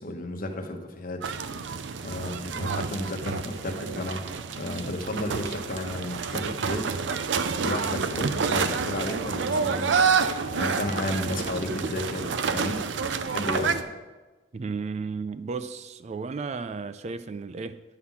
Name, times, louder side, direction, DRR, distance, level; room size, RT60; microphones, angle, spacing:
voice 1, 0.0-1.3 2.0-4.2 4.5-6.9 7.6-12.9 13.3-13.9, left 1 dB, 50° left, 1.1 m, -33 dB
sound 1, 1.2-13.8, right 5 dB, 90° right, 0.5 m, -28 dB
voice 2, 14.5-17.8, right 4 dB, 40° right, 0.3 m, -34 dB
10.0 x 5.6 x 5.9 m
head